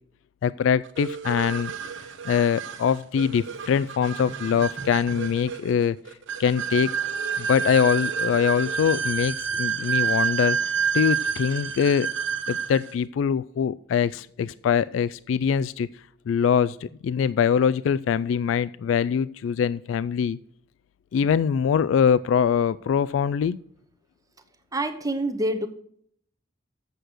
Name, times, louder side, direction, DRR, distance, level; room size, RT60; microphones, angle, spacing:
voice 1, 0.4-1.7 2.2-6.0 6.4-6.9 7.4-12.1 12.5-15.9 16.3-20.4 21.1-23.6, left 7 dB, 75° left, 16 dB, 0.3 m, -23 dB
sound 1, 1.0-12.9, right 6 dB, 70° right, 0.7 m, -29 dB
voice 2, 24.7-25.7, right 1 dB, 20° right, 7 dB, 0.9 m, -26 dB
8.0 x 6.6 x 6.1 m, 0.63 s
head